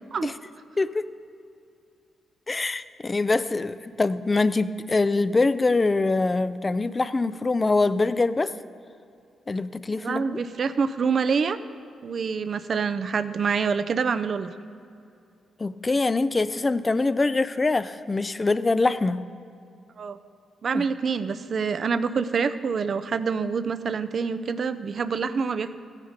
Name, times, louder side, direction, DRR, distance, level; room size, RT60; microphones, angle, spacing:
voice 1, 0.8-1.1 2.5-8.5 9.5-10.4 15.6-19.2 20.7-20.8, left 3 dB, 30° left, 14 dB, 0.5 m, -24 dB
voice 2, 9.9-11.6 12.0-14.5 20.0-20.2 20.6-25.7, right 5 dB, 55° right, 13 dB, 0.6 m, -26 dB
14.5 x 9.1 x 5.2 m, 2.5 s
cardioid pair, 75°, 0 cm